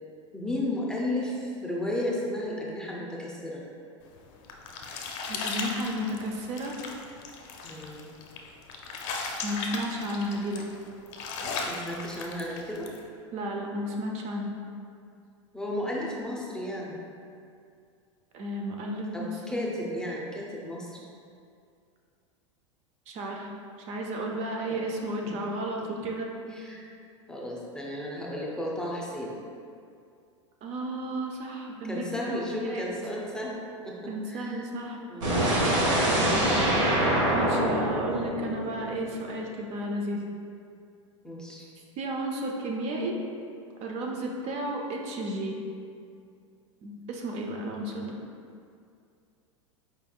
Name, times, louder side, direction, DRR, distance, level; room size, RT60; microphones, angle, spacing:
voice 1, 0.3-3.6 7.6-8.0 11.6-12.9 15.5-17.0 19.1-21.0 24.7-24.8 25.2-25.4 25.9-26.0 26.4-26.8 27.3-29.4 31.9-33.6 33.8-34.6 35.0-35.4 41.2-41.7, left 1 dB, 5° left, -4 dB, 0.6 m, -34 dB
sound 1, 4.1-13.0, left 4 dB, 55° left, 0.5 m, -37 dB
voice 2, 5.3-6.8 7.6-7.7 9.4-10.7 13.3-14.5 18.3-19.7 23.1-23.5 23.9-26.3 30.6-32.9 34.1-35.0 36.2-40.2 42.0-43.2 43.8-45.6 46.8-48.2, right 1 dB, 45° right, 0 dB, 0.5 m, -33 dB
sound 2, 35.2-39.2, right 1 dB, 80° right, 1.1 m, -25 dB
4.6 x 3.4 x 2.3 m, 2.4 s
hypercardioid pair, 100°, 16 cm